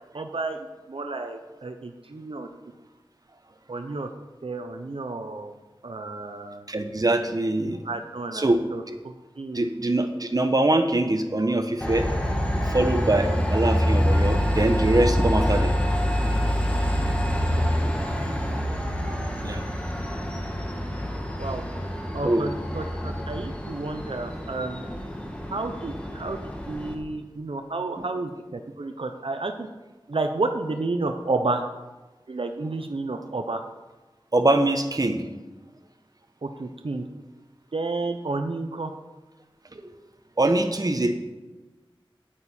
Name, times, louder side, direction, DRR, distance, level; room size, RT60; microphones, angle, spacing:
voice 1, 0.1-2.5 3.7-4.1 4.4-5.6 5.8-6.6 7.7-9.6 13.4-13.5 17.5-17.9 18.5-18.6 21.4-21.6 22.1-24.8 25.5-26.4 26.7-29.7 30.1-31.6 32.3-33.6 36.4-37.0 37.7-38.9, right 3 dB, 80° right, 6 dB, 0.7 m, -31 dB
voice 2, 6.7-7.8 8.3-8.6 8.9-9.0 9.5-12.1 12.6-15.7 18.0-18.2 18.7-18.8 19.1-19.6 22.2-22.4 34.3-35.2 39.8-39.9 40.4-41.2, right 2 dB, 45° right, 7 dB, 0.8 m, -23 dB
Train, 11.8-26.9, equal, 15° left, 1.4 m, -26 dB
8.8 x 8.6 x 4.3 m, 1.2 s
wide cardioid pair, 55°, 9 cm